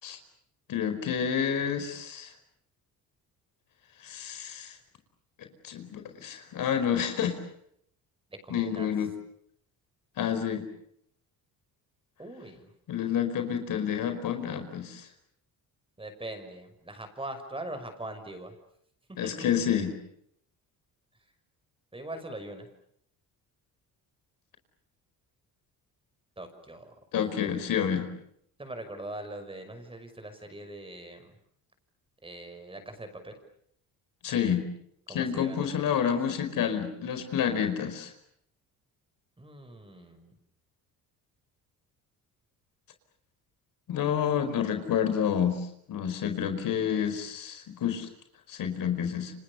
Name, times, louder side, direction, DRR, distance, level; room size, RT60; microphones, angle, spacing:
voice 1, 0.7-2.3 4.0-4.7 5.6-7.4 8.5-9.1 10.2-10.6 12.9-15.1 19.2-19.9 27.1-28.1 34.2-34.6 35.1-38.1 43.9-45.6 45.9-48.1 48.5-49.3, left 8 dB, 65° left, 8 dB, 4.9 m, -29 dB
voice 2, 8.4-8.9 12.2-12.7 16.0-18.5 19.2-19.5 21.9-22.7 26.4-26.9 28.6-31.3 32.2-33.4 35.1-35.7 39.4-40.3, right 1 dB, 15° right, 8 dB, 6.0 m, -41 dB
29.5 x 27.0 x 7.0 m, 0.68 s
cardioid pair, 110°, 35 cm